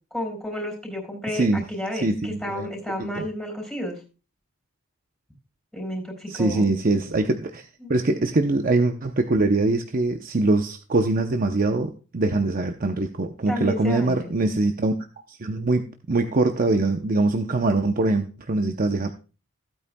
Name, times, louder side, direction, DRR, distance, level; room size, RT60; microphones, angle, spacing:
voice 1, 0.1-4.0 5.7-6.7 7.8-7.9 13.5-14.3, left 1 dB, ahead, 2 dB, 3.8 m, -31 dB
voice 2, 1.3-1.6 1.9-2.7 3.0-3.3 6.3-14.9 15.3-19.1, right 2 dB, 40° right, 5 dB, 0.7 m, -23 dB
15.5 x 8.9 x 2.2 m, 0.33 s
head